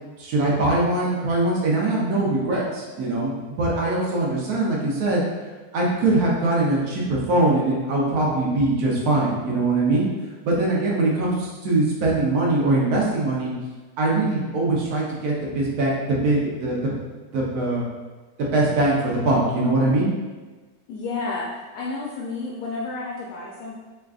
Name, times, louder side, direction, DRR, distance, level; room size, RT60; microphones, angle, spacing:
voice 1, 0.2-3.3 3.6-5.2 5.7-10.1 10.4-13.5 14.0-17.0 17.3-17.8 18.4-20.1, right 2 dB, 80° right, -3 dB, 1.2 m, -22 dB
voice 2, 20.9-23.8, left 3 dB, 80° left, -4 dB, 1.0 m, -31 dB
3.5 x 3.2 x 2.4 m, 1.2 s
omnidirectional pair, 1.6 m